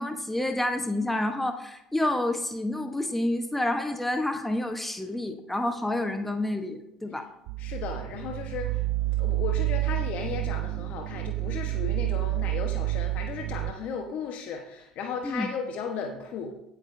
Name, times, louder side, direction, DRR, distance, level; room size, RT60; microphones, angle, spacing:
voice 1, 0.0-7.3 15.2-15.5, left 1 dB, 5° left, 6 dB, 1.0 m, -29 dB
sound 1, 7.5-13.7, right 17 dB, 65° right, 0.3 m, -29 dB
voice 2, 7.6-8.8 9.2-16.5, left 6 dB, 55° left, 3 dB, 1.1 m, -35 dB
16.5 x 6.6 x 2.7 m, 0.82 s
hypercardioid pair, 65°, 3 cm